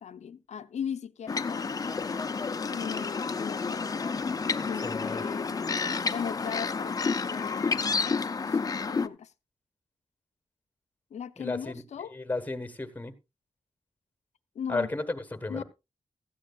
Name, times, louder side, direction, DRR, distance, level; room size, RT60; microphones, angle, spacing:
voice 1, 0.0-1.9 2.7-3.8 4.7-5.6 6.1-6.9 7.3-7.7 8.0-8.6 8.8-9.3 11.1-12.1 14.6-14.9 15.5-15.6, left 8 dB, 80° left, 0.6 m, -38 dB
sound 1, 1.3-9.1, left 4 dB, 35° left, 0.5 m, -30 dB
voice 2, 4.6-5.3 11.4-11.8 12.1-13.1 14.7-15.6, left 2 dB, 15° left, 1.3 m, -34 dB
16.5 x 13.0 x 2.4 m
wide cardioid pair, 140°, 12 cm